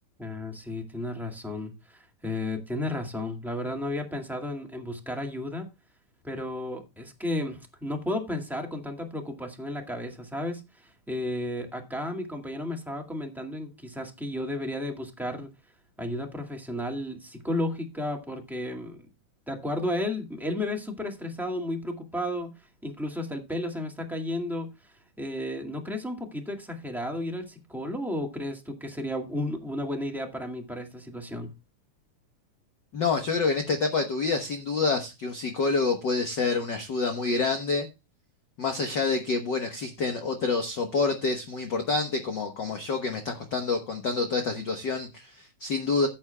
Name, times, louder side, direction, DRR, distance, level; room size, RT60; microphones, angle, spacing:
voice 1, 0.2-5.7 6.2-15.5 16.0-19.0 19.5-22.5 22.8-24.7 25.2-31.5, left 1 dB, ahead, 1.4 m, -33 dB
voice 2, 32.9-37.9 38.6-46.1, left 4 dB, 60° left, 1.2 m, -27 dB
15.0 x 8.7 x 2.2 m
omnidirectional pair, 3.6 m